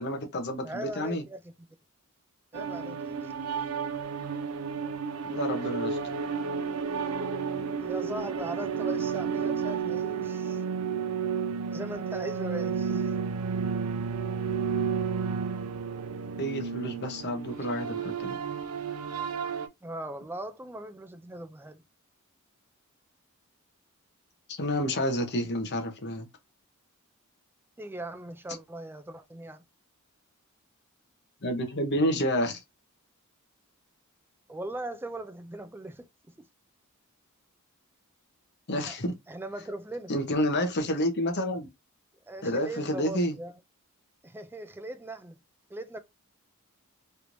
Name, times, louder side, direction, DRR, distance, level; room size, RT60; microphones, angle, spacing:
voice 1, 0.0-1.2 5.2-6.0 16.4-18.4 24.5-26.3 31.4-32.6 38.7-39.1 40.1-41.7 42.4-43.4, equal, 50° left, 0.8 m, -29 dB
voice 2, 0.6-1.7 2.5-3.3 7.8-10.6 11.7-13.1 19.8-21.8 27.8-29.6 34.5-36.1 38.9-39.0 39.3-40.1 42.3-43.5 44.2-45.4 45.7-46.0, right 1 dB, 10° right, 0.3 m, -39 dB
sound 1, 2.5-19.7, right 6 dB, 80° right, 0.5 m, -32 dB
3.3 x 3.0 x 2.5 m
head